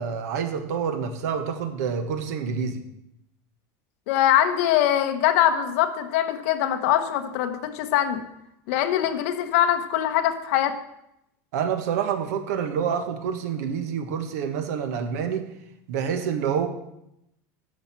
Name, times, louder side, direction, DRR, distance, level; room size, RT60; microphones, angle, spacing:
voice 1, 0.0-2.8 11.5-15.5 15.9-16.7, right 7 dB, 70° right, 8 dB, 1.3 m, -27 dB
voice 2, 4.1-8.2 8.7-10.7, left 11 dB, 55° left, 7 dB, 1.0 m, -22 dB
10.5 x 5.2 x 7.4 m, 0.83 s
supercardioid pair, 180°, 9 cm